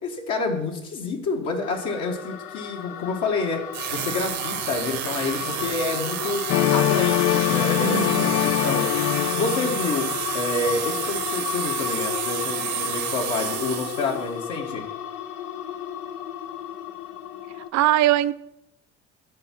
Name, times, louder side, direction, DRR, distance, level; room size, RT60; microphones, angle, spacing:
voice 1, 0.0-3.6 3.9-6.4 6.7-8.9 9.3-10.1 10.3-14.8, left 3 dB, 60° left, 1.6 m, -28 dB
sound 1, 1.6-17.7, left 10 dB, 80° left, 0.8 m, -33 dB
sound 2, 3.7-14.3, right 12 dB, 75° right, 1.1 m, -31 dB
sound 3, 6.5-10.4, left 13 dB, 45° left, 0.4 m, -23 dB
voice 2, 7.8-8.4 17.7-18.3, right 14 dB, 55° right, 0.5 m, -21 dB
10.5 x 3.7 x 6.0 m
supercardioid pair, 80°, 33 cm